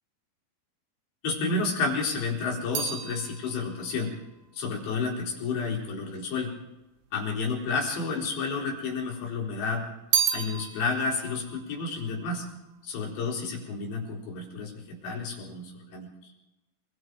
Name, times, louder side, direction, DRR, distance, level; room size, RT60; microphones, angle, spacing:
voice 1, 1.2-4.1 4.5-6.5 7.1-9.8 10.3-12.5 12.8-16.3, left 4 dB, 85° left, -3 dB, 6.6 m, -31 dB
sound 1, 1.8-6.2 7.0-7.8 8.1-9.2 9.5-13.1 13.3-13.9, right 9 dB, 80° right, 3.9 m, -34 dB
27.5 x 21.5 x 4.8 m, 1.0 s
omnidirectional pair, 4.9 m